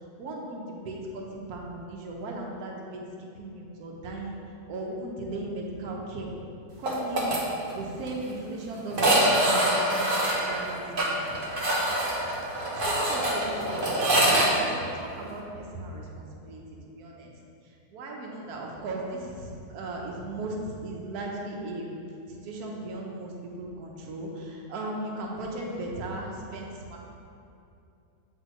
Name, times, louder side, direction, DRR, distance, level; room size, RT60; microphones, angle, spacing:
voice 1, 0.2-4.4 4.7-6.3 6.8-7.2 7.7-11.2 12.5-13.9 14.5-16.6 16.9-17.3 17.9-21.9 22.3-27.0, right 2 dB, 70° right, -1 dB, 1.3 m, -37 dB
sound 1, 6.9-7.4 7.7-7.8 8.1-8.2 8.9-14.5, right 1 dB, 40° right, 1.0 m, -25 dB
7.8 x 4.9 x 3.0 m, 2.6 s
omnidirectional pair, 1.7 m